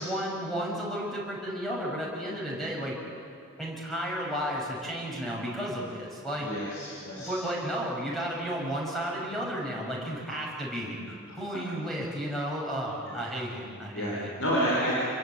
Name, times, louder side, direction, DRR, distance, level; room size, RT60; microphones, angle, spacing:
voice 1, 0.0-3.0 3.6-6.5 7.2-14.3, equal, ahead, -3 dB, 6.7 m, -33 dB
voice 2, 6.4-7.3 11.5-11.6 13.1-13.3 13.9-15.0, equal, 70° left, -5 dB, 6.0 m, -30 dB
28.0 x 22.0 x 9.1 m, 2.6 s
head